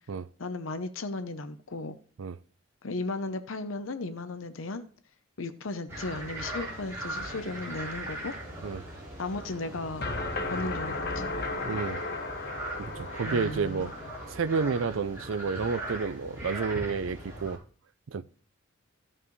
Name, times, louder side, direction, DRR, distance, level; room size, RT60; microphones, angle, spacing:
voice 1, 0.4-2.0 2.8-4.9 5.4-8.3 9.2-10.1 10.5-11.3 13.2-13.9, left 2 dB, 80° left, 0.8 m, -35 dB
sound 1, 5.9-17.6, right 1 dB, 15° right, 4.0 m, -40 dB
sound 2, 10.0-14.9, left 2 dB, 50° left, 1.1 m, -35 dB
voice 2, 11.7-12.0 12.8-13.9 14.3-17.6 18.1-18.2, right 5 dB, 75° right, 0.5 m, -30 dB
15.5 x 5.5 x 3.2 m
head